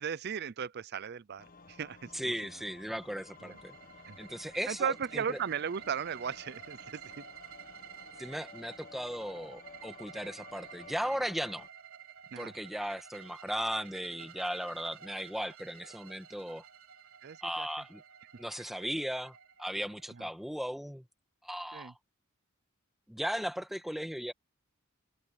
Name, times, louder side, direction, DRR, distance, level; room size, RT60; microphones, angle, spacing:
voice 1, 0.0-2.3 3.4-3.6 4.1-4.2 4.7-7.2 12.3-12.5 17.2-17.7 21.7-21.9, right 7 dB, 50° right, 0.5 m, -36 dB
sound 1, 1.4-11.7, left 4 dB, 45° left, 1.6 m, -54 dB
voice 2, 2.1-3.7 4.2-5.4 8.2-11.6 12.4-16.6 17.4-18.0 18.4-21.0 21.4-21.9 23.1-24.3, equal, ahead, 1.6 m, -37 dB
sound 2, 2.8-20.6, right 8 dB, 80° right, 4.0 m, -52 dB
head